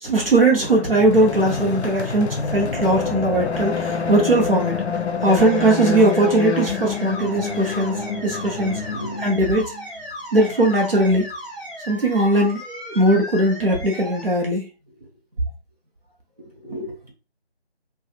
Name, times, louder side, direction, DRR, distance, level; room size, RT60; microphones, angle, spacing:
voice 1, 0.0-4.8 5.2-8.8 9.2-9.7 10.3-11.3 11.9-14.7, right 1 dB, 60° right, 0.9 m, -19 dB
sound 1, 0.7-9.9, left 5 dB, 90° left, 0.6 m, -27 dB
sound 2, 5.3-14.2, equal, 5° right, 1.3 m, -36 dB
voice 2, 8.9-9.4 16.4-17.1, equal, 35° right, 0.9 m, -36 dB
2.8 x 2.4 x 2.4 m
figure-of-eight pair, 170°, 32 cm